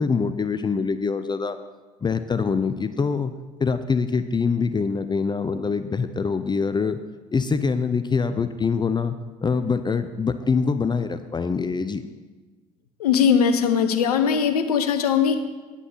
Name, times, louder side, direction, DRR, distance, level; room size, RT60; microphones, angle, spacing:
voice 1, 0.0-1.6 2.0-3.3 3.6-7.0 7.3-12.0, left 5 dB, 25° left, 11 dB, 0.6 m, -24 dB
voice 2, 13.0-15.4, left 7 dB, 85° left, 8 dB, 0.8 m, -20 dB
9.9 x 6.1 x 7.4 m, 1.3 s
hypercardioid pair, 55°, 19 cm